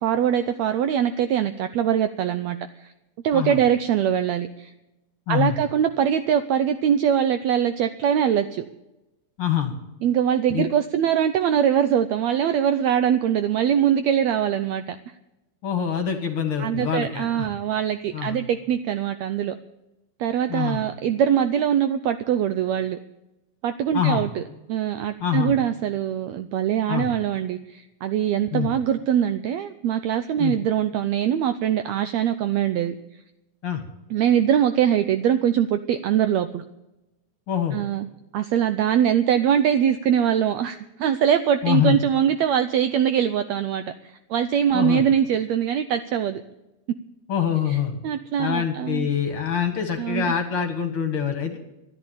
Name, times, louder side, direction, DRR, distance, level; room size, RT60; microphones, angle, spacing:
voice 1, 0.0-2.9 3.2-4.7 5.3-8.6 10.0-15.0 16.6-19.6 20.2-23.0 23.6-24.4 24.7-32.9 34.1-36.6 37.7-46.4 47.7-47.8 48.0-49.1 50.0-50.3, right 9 dB, 80° right, 10 dB, 1.6 m, -22 dB
voice 2, 9.4-9.7 10.5-10.7 15.6-17.5 18.1-18.4 20.5-20.8 23.9-24.2 25.2-25.5 26.9-27.1 28.5-28.7 30.4-30.5 33.6-33.8 37.5-37.8 41.6-42.0 44.7-45.0 47.3-47.9 48.4-51.6, left 9 dB, 50° left, 6 dB, 2.1 m, -25 dB
13.0 x 11.0 x 9.0 m, 0.94 s
omnidirectional pair, 3.8 m